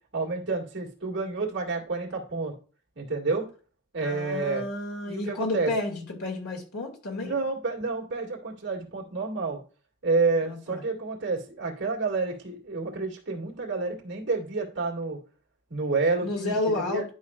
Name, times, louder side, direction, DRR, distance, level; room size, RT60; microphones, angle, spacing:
voice 1, 0.1-2.5 3.0-3.5 3.9-4.7 5.0-5.7 7.2-9.6 10.0-15.2 15.7-17.0, right 3 dB, 55° right, 0 dB, 2.2 m, -29 dB
voice 2, 4.0-7.3 10.4-10.8 16.2-17.1, left 2 dB, 90° left, 1 dB, 2.3 m, -31 dB
11.0 x 5.5 x 2.4 m, 0.37 s
head